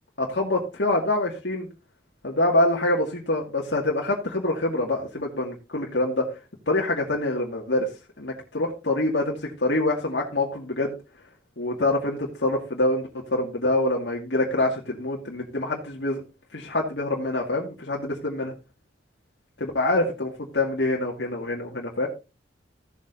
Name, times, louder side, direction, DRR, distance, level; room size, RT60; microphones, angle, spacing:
voice 1, 0.2-1.7 2.2-6.2 6.7-7.9 8.2-10.9 11.6-16.2 16.5-18.5 19.6-22.1, left 2 dB, 75° left, -1 dB, 2.1 m, -25 dB
16.0 x 7.5 x 2.7 m, 0.29 s
head